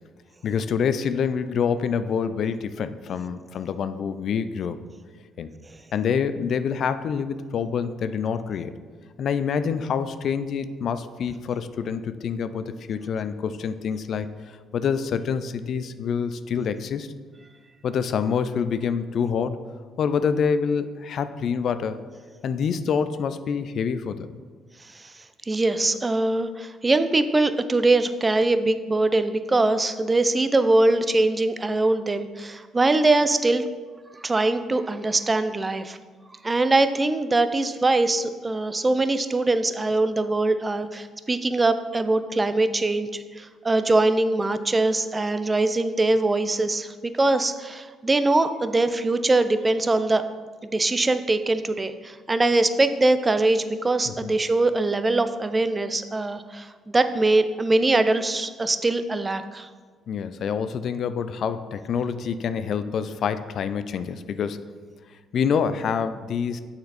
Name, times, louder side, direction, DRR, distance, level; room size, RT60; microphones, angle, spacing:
voice 1, 0.4-4.8 5.4-5.5 5.9-8.7 9.2-17.1 17.8-19.6 20.0-22.0 22.4-24.4 54.1-54.3 60.1-64.6 65.3-66.6, left 6 dB, 65° left, 12 dB, 0.3 m, -26 dB
voice 2, 25.5-33.6 34.1-36.0 36.4-50.2 50.6-59.7, right 2 dB, 25° right, 11 dB, 0.4 m, -22 dB
6.5 x 4.3 x 4.1 m, 1.5 s
supercardioid pair, 65°, 0 cm